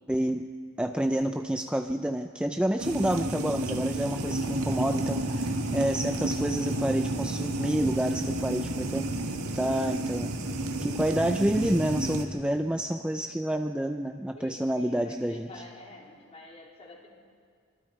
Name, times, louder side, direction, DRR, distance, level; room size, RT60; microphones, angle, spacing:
voice 1, 0.1-0.5 0.8-9.1 9.5-10.3 10.8-15.6, right 1 dB, 5° right, 6 dB, 0.4 m, -29 dB
sound 1, 2.8-12.2, right 1 dB, 85° right, 1.8 m, -31 dB
voice 2, 14.3-17.2, left 2 dB, 30° left, -2 dB, 3.4 m, -48 dB
25.0 x 24.5 x 4.6 m, 2.1 s
head